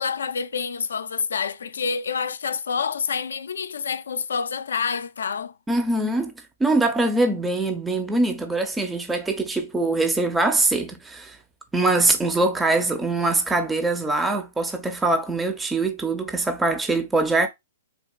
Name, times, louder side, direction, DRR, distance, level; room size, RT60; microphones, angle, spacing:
voice 1, 0.0-5.5, left 6 dB, 80° left, 0.3 m, -27 dB
voice 2, 5.7-6.3 6.6-11.4 11.7-17.5, right 2 dB, 10° right, 0.5 m, -23 dB
3.7 x 2.4 x 2.2 m
hypercardioid pair, 130°, 0 cm